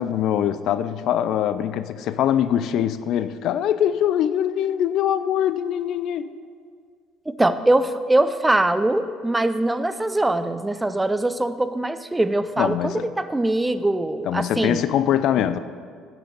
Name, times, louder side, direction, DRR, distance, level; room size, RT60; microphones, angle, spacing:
voice 1, 0.0-6.3 12.6-13.1 14.2-15.6, left 10 dB, 65° left, 13 dB, 0.4 m, -23 dB
voice 2, 7.3-14.8, right 2 dB, 15° right, 12 dB, 0.5 m, -22 dB
10.0 x 6.1 x 6.6 m, 2.1 s
hypercardioid pair, 60°, 0 cm